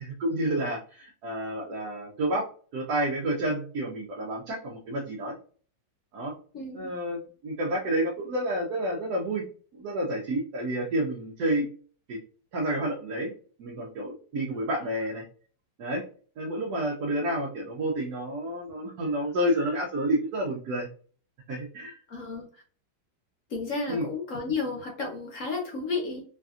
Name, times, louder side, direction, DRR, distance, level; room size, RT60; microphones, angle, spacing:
voice 1, 0.0-5.3 6.1-6.3 6.7-9.4 9.7-11.7 12.1-12.2 12.5-13.3 13.6-15.2 15.8-16.0 16.4-20.9 21.5-22.0 23.9-24.1, right 1 dB, 65° right, -2 dB, 1.1 m, -30 dB
voice 2, 6.5-6.9 22.1-22.5 23.5-26.2, left 4 dB, 55° left, 0 dB, 1.0 m, -32 dB
3.3 x 2.6 x 2.4 m, 0.41 s
omnidirectional pair, 2.0 m